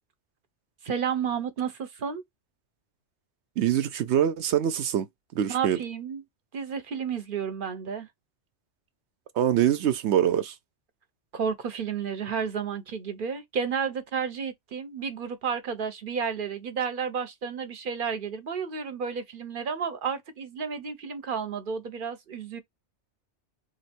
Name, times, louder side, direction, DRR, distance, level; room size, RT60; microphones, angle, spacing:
voice 1, 0.8-2.2 5.5-6.2 6.5-8.1 11.3-22.6, right 6 dB, 55° right, 0.9 m, -31 dB
voice 2, 3.6-5.1 5.3-5.8 9.3-10.5, right 10 dB, 80° right, 0.9 m, -24 dB
3.1 x 2.8 x 4.3 m
omnidirectional pair, 1.1 m